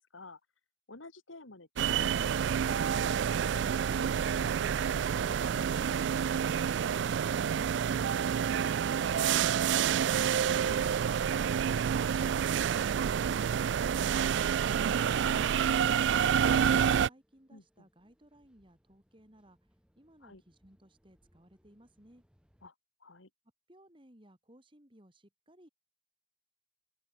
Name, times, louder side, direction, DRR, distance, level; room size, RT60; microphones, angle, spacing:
voice 1, 0.9-5.8 10.6-10.8 14.3-15.5 17.5-17.9 20.2-20.4 22.6-22.7 23.0-23.3, left 2 dB, 85° left, 2.7 m, -52 dB
sound 1, 1.8-17.1, right 8 dB, 65° right, 0.3 m, -28 dB
Bowed string instrument, 3.3-9.1, left 1 dB, 35° left, 5.8 m, -65 dB
sound 2, 14.9-22.7, equal, 5° right, 8.0 m, -72 dB
voice 2, 15.6-19.6 20.0-22.2 23.7-25.7, right 1 dB, 25° right, 4.0 m, -60 dB
open air
head